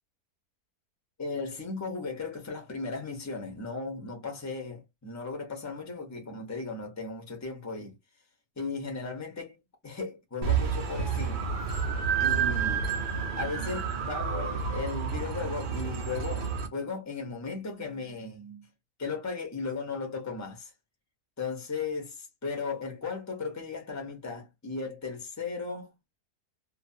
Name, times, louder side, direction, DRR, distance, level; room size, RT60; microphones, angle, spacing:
voice 1, 1.2-8.0 8.6-9.6 9.8-11.4 12.2-12.9 13.4-18.7 19.0-20.7 21.4-25.9, left 4 dB, 20° left, 0.5 m, -36 dB
sound 1, 10.4-16.7, right 6 dB, 70° right, 0.4 m, -30 dB
2.6 x 2.3 x 2.6 m
omnidirectional pair, 1.8 m